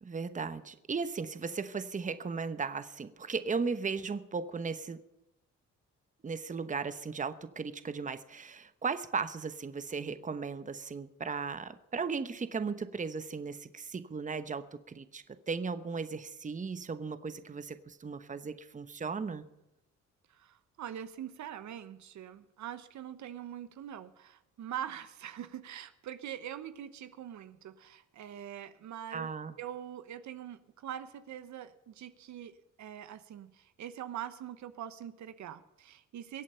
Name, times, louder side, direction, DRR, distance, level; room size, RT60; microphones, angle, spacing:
voice 1, 0.0-5.0 6.2-19.4 29.1-29.5, right 5 dB, 25° right, 12 dB, 1.0 m, -36 dB
voice 2, 20.3-29.3 29.6-36.4, right 10 dB, 70° right, 12 dB, 1.1 m, -43 dB
23.0 x 8.4 x 5.7 m, 0.91 s
cardioid pair, 90°, 30 cm